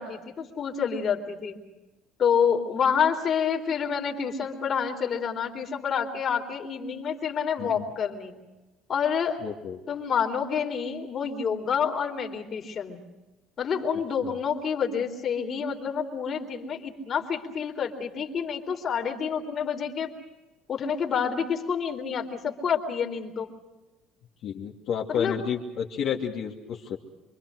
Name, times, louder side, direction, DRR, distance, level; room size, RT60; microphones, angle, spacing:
voice 1, 0.0-1.6 2.2-8.4 8.9-9.4 9.9-13.0 13.6-20.1 20.7-23.5 25.1-25.3, left 7 dB, 35° left, 3 dB, 3.7 m, -28 dB
voice 2, 9.4-9.8 14.2-14.3 24.4-27.0, left 8 dB, 55° left, -3 dB, 2.9 m, -31 dB
27.0 x 24.5 x 6.4 m, 1.1 s
cardioid pair, 140°, 0 cm